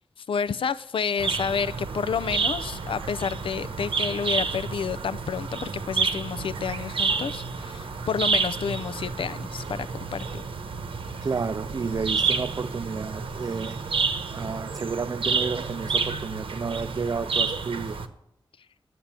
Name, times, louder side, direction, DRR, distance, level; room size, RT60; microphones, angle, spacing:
voice 1, 0.3-10.4, left 6 dB, 80° left, 0.4 m, -30 dB
sound 1, 1.2-18.1, right 4 dB, 85° right, 0.9 m, -29 dB
voice 2, 11.2-13.8 14.3-18.0, right 5 dB, 45° right, 0.4 m, -31 dB
10.5 x 8.1 x 7.4 m
wide cardioid pair, 110°, 9 cm